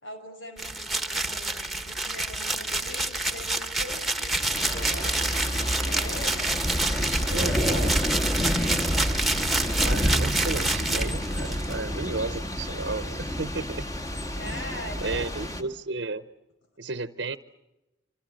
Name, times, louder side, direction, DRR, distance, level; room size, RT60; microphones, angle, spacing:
voice 1, 0.0-6.4 7.3-8.0 14.3-15.7, left 1 dB, 90° left, 5 dB, 5.9 m, -41 dB
sound 1, 0.6-11.7, right 2 dB, ahead, 1.6 m, -28 dB
Thunder / Rain, 4.5-15.6, equal, 15° left, 1.9 m, -29 dB
voice 2, 7.3-7.9 9.8-13.9 14.4-16.2 16.8-17.4, right 3 dB, 65° right, 13 dB, 0.9 m, -33 dB
27.0 x 26.5 x 7.7 m, 0.98 s
head